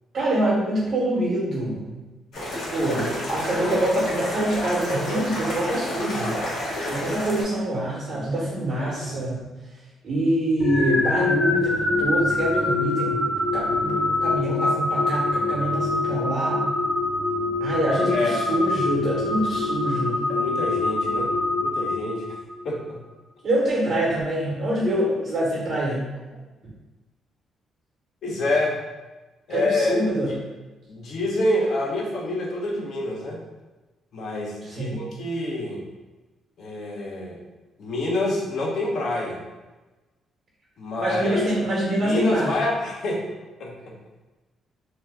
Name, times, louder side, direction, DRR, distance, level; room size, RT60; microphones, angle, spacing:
voice 1, 0.1-2.0 2.5-6.4 6.9-9.5 10.0-16.6 17.6-20.3 23.4-26.1 29.5-30.4 34.6-35.0 41.0-42.5, right 1 dB, 55° right, -5 dB, 1.0 m, -25 dB
sound 1, 2.3-7.4, equal, 80° left, 1.2 m, -29 dB
voice 2, 8.8-9.2 18.1-18.4 20.3-21.3 21.6-22.4 22.6-23.0 28.2-28.8 29.5-30.0 30.9-33.4 34.1-35.8 36.6-37.4 37.8-39.4 40.8-41.5 42.0-43.2 43.6-43.9, left 2 dB, 65° left, -1 dB, 0.7 m, -27 dB
sound 2, 10.6-22.6, left 3 dB, 30° left, 0.6 m, -24 dB
2.8 x 2.2 x 3.4 m, 1.1 s
cardioid pair, 90°, 0 cm